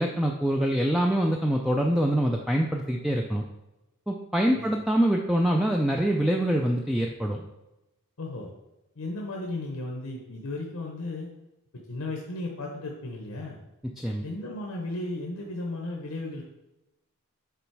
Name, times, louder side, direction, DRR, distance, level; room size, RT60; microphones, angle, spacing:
voice 1, 0.0-3.5 4.1-7.5 14.0-14.2, right 1 dB, ahead, 1 dB, 0.3 m, -25 dB
voice 2, 8.2-8.5 8.9-11.3 11.9-13.6 14.2-16.4, left 2 dB, 80° left, 0 dB, 0.9 m, -35 dB
6.9 x 4.1 x 4.6 m, 0.97 s
head